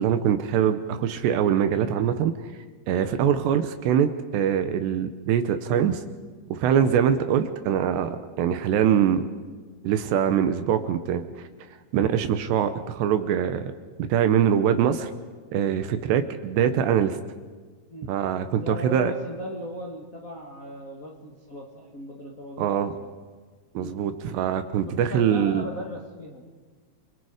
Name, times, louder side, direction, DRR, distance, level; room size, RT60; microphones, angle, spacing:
voice 1, 0.0-2.3 2.9-6.0 6.5-9.2 9.8-11.2 11.9-13.7 14.0-15.1 15.5-17.2 18.1-19.1 22.6-22.9 23.7-25.6, right 9 dB, 75° right, 9 dB, 2.9 m, -23 dB
voice 2, 18.5-22.7 23.0-23.1 23.8-24.0 24.8-26.5, left 1 dB, 55° left, -2 dB, 0.9 m, -37 dB
29.5 x 21.5 x 5.0 m, 1.4 s
omnidirectional pair, 5.3 m